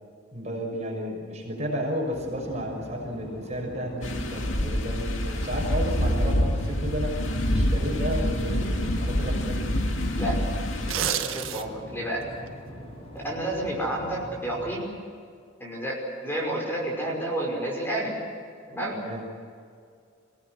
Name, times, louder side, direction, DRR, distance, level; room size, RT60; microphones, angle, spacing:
voice 1, 0.3-7.2 7.5-9.6 18.9-19.2, equal, 35° right, 0 dB, 6.2 m, -32 dB
sound 1, 2.1-14.8, equal, 30° left, 5.4 m, -43 dB
sound 2, 4.0-10.9, equal, 70° left, 2.4 m, -26 dB
sound 3, 10.7-11.9 12.3-12.5, right 9 dB, 80° right, 1.4 m, -29 dB
voice 2, 10.9-12.2 13.1-14.9 15.6-18.1 18.7-19.0, right 1 dB, 10° left, -2 dB, 5.5 m, -30 dB
27.0 x 17.5 x 8.1 m, 2.3 s
head